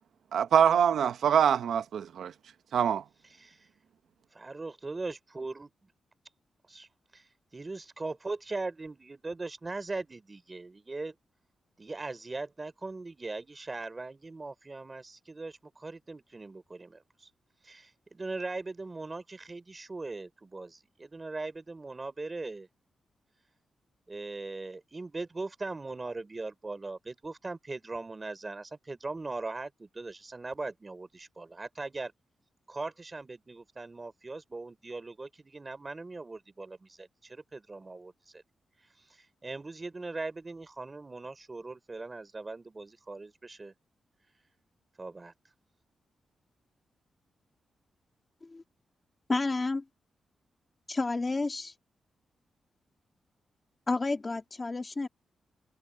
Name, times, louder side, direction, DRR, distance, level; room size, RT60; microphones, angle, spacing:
voice 1, 0.3-2.3 2.7-3.0, right 8 dB, 75° right, 0.8 m, -24 dB
voice 2, 3.4-3.7 4.3-5.9 6.7-7.2 7.5-11.2 11.8-17.3 17.6-22.7 24.1-32.1 32.7-38.4 39.1-43.7 45.0-45.3, right 3 dB, 20° right, 3.8 m, -40 dB
voice 3, 49.3-49.8 51.0-51.7 53.9-55.1, left 3 dB, 20° left, 1.8 m, -30 dB
wide cardioid pair, 170°, 0 cm